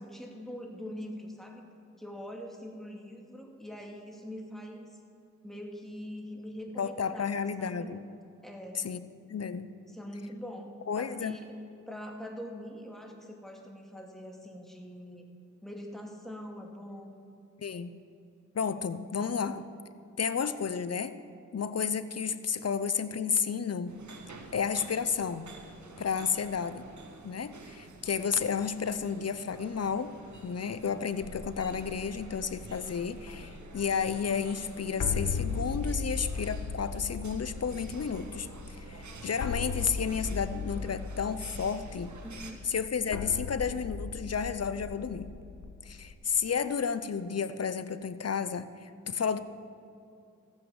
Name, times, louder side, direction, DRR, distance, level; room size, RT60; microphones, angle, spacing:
voice 1, 0.0-1.6 2.0-4.9 5.4-7.9 8.4-9.0 9.9-11.6 11.9-15.2 15.6-17.2 42.2-42.7, equal, ahead, 1 dB, 2.3 m, -43 dB
voice 2, 6.8-8.0 8.7-9.0 9.3-9.7 10.9-11.4 17.6-17.9 18.5-19.6 20.2-21.2 21.5-24.0 24.5-25.5 26.0-26.8 27.2-30.1 30.4-38.5 38.8-42.1 42.6-45.3 45.8-49.4, left 6 dB, 55° left, 13 dB, 0.7 m, -32 dB
sound 1, 23.9-42.5, right 3 dB, 75° right, 1.5 m, -50 dB
sound 2, 31.2-46.1, left 5 dB, 85° left, 1.0 m, -38 dB
14.5 x 9.1 x 7.1 m, 2.6 s
cardioid pair, 55°, 30 cm